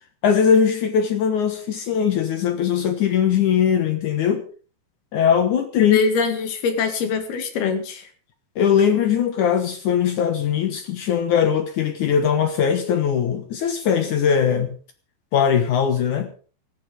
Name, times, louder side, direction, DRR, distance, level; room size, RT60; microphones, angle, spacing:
voice 1, 0.2-4.4 5.1-6.0 8.6-14.8 15.3-16.3, left 7 dB, 65° left, 2.4 m, -20 dB
voice 2, 5.8-8.0, left 5 dB, 90° left, 4.2 m, -22 dB
17.0 x 12.5 x 5.1 m
omnidirectional pair, 4.3 m